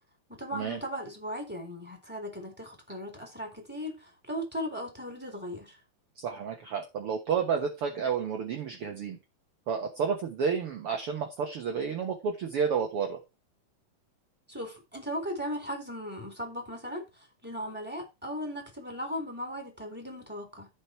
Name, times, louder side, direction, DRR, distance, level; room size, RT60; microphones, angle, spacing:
voice 1, 0.4-5.8 14.5-20.7, equal, 5° right, 3.4 m, -37 dB
voice 2, 6.2-9.2 9.7-13.2, right 6 dB, 60° right, 1.5 m, -31 dB
14.5 x 5.3 x 4.5 m
omnidirectional pair, 4.1 m